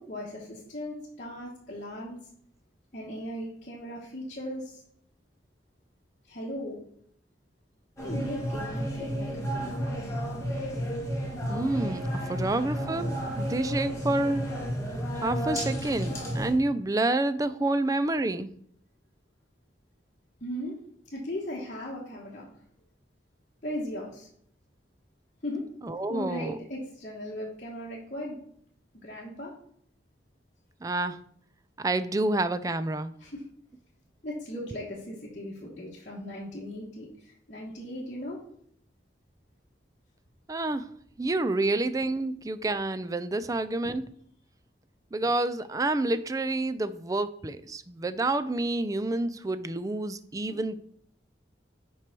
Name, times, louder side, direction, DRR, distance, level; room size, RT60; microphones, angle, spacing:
voice 1, 0.0-2.2 2.9-4.8 6.3-6.8 8.0-10.2 10.5-10.7 20.4-20.8 21.1-22.5 23.6-24.3 25.4-25.6 26.1-28.4 28.9-29.5 33.2-33.4 34.2-38.4 50.5-50.6, left 1 dB, 45° left, -6 dB, 1.4 m, -38 dB
sound 1, 8.0-16.5, equal, 15° left, 1.7 m, -32 dB
voice 2, 11.5-12.0 12.3-14.5 15.1-18.5 25.8-26.6 30.8-31.2 31.8-33.1 40.5-40.9 41.2-44.0 45.1-50.8, right 2 dB, 20° right, 12 dB, 0.4 m, -28 dB
5.9 x 4.6 x 6.1 m, 0.64 s
head